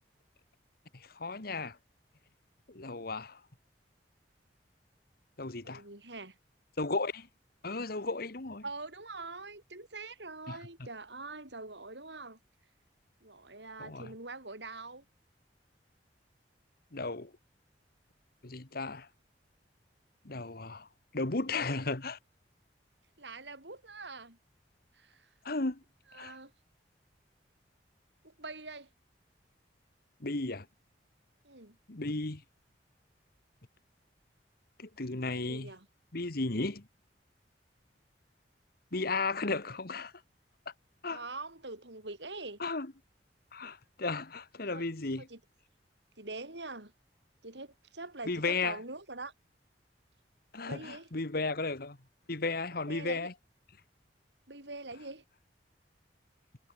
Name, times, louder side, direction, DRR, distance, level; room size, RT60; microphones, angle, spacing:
voice 1, 0.9-1.8 2.7-3.4 5.4-5.8 6.8-7.3 7.6-8.6 10.5-10.6 13.8-14.1 16.9-17.3 18.4-19.1 20.3-20.9 21.1-22.2 25.5-25.8 26.1-26.3 30.2-30.7 31.9-32.4 34.8-35.7 36.1-36.8 38.9-40.1 41.0-41.2 42.6-42.9 43.5-45.3 48.3-48.8 50.5-52.0 52.3-53.3, left 3 dB, 60° left, 1.7 m, -34 dB
voice 2, 5.6-6.4 8.6-12.4 13.2-15.0 23.2-24.4 24.9-25.3 26.1-26.5 28.2-28.9 31.4-31.8 35.3-35.9 41.1-42.6 44.7-44.9 45.2-45.4 46.2-46.9 47.4-49.3 50.7-51.1 52.9-53.3 54.5-55.2, right 3 dB, 80° right, 7.6 m, -44 dB
head